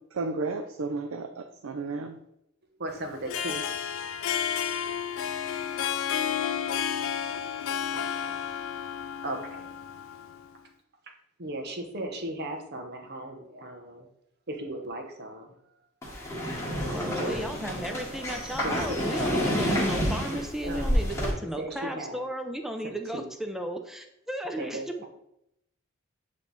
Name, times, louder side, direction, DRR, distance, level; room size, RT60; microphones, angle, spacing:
voice 1, 0.1-2.2, right 3 dB, 85° right, 5 dB, 0.5 m, -33 dB
voice 2, 2.8-3.6 7.9-8.4 9.2-9.7 11.4-14.0 14.5-15.5 17.1-17.5 17.9-18.0 18.6-19.1 20.6-21.2 21.6-22.2 22.8-23.3 24.6-25.1, right 1 dB, 50° right, 3 dB, 1.0 m, -37 dB
Harp, 3.1-10.5, left 8 dB, 70° left, 0.4 m, -31 dB
sound 1, 16.0-21.3, equal, 15° left, 1.6 m, -29 dB
voice 3, 16.9-23.8 24.3-24.8, right 1 dB, ahead, 4 dB, 0.5 m, -35 dB
8.0 x 3.2 x 4.0 m, 0.80 s
head